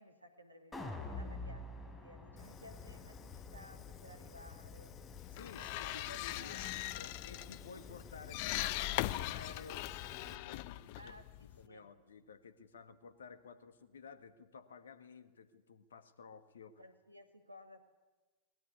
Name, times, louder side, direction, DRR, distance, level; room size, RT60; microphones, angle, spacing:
voice 1, 0.0-5.0 5.4-6.0 6.3-7.3 11.0-11.9 16.8-17.9, equal, 85° right, 6 dB, 2.5 m, -58 dB
sound 1, 0.7-6.9 7.3-7.4, left 2 dB, 15° left, 4.5 m, -49 dB
Fire, 2.4-10.4, left 7 dB, 30° left, 1.5 m, -52 dB
sound 2, 5.2-11.7, left 17 dB, 45° left, 0.7 m, -40 dB
voice 2, 5.3-9.8 10.2-11.2 11.6-16.8, left 5 dB, 65° left, 12 dB, 1.7 m, -53 dB
22.5 x 20.5 x 9.6 m, 1.2 s
figure-of-eight pair, 90°, 0 cm